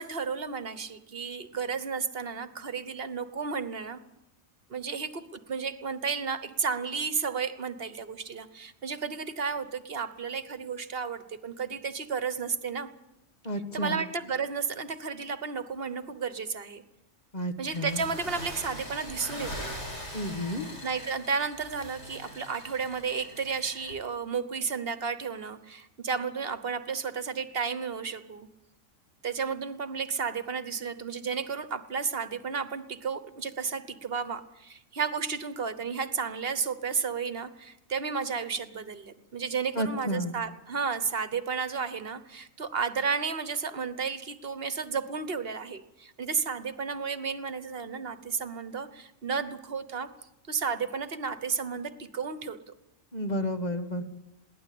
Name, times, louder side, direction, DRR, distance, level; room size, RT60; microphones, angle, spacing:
voice 1, 0.0-4.0 4.7-12.9 13.7-16.8 17.6-19.7 20.8-28.5 29.2-50.1 50.5-52.6, right 5 dB, 50° right, 12 dB, 1.3 m, -32 dB
voice 2, 13.4-14.0 17.3-18.0 20.1-20.7 39.7-40.4 53.1-54.0, equal, 35° left, 7 dB, 1.7 m, -31 dB
sound 1, 17.7-23.9, equal, 65° left, 5.5 m, -41 dB
22.0 x 17.0 x 8.5 m, 0.86 s
omnidirectional pair, 1.3 m